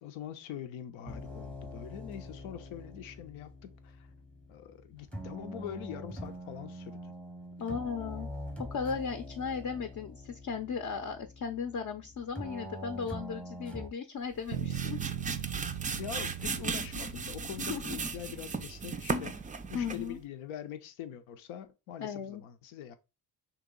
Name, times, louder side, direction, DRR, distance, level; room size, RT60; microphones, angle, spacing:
voice 1, 0.0-4.1 4.5-7.1 16.0-23.0, left 10 dB, 85° left, 0.6 m, -44 dB
sound 1, 1.1-13.9, equal, 5° left, 0.7 m, -44 dB
voice 2, 7.6-8.3 8.7-15.0 17.7-18.0 19.7-20.2 22.0-22.4, left 6 dB, 40° left, 0.6 m, -36 dB
sound 2, 14.3-20.2, right 4 dB, 20° right, 0.3 m, -36 dB
sound 3, 14.5-18.6, right 12 dB, 75° right, 0.6 m, -39 dB
3.0 x 2.9 x 3.6 m
supercardioid pair, 50°, 47 cm